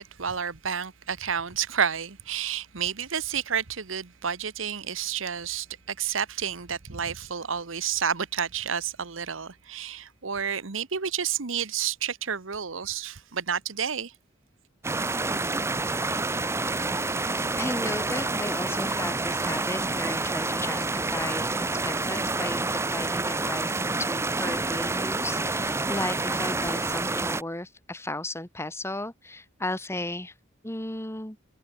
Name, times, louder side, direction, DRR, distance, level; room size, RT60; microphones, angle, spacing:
voice 1, 0.0-14.1, right 7 dB, 80° right, 1.2 m, -30 dB
sound 1, 14.8-27.4, right 3 dB, 15° right, 0.6 m, -28 dB
voice 2, 17.6-30.3 30.6-31.4, left 1 dB, 15° left, 2.4 m, -35 dB
head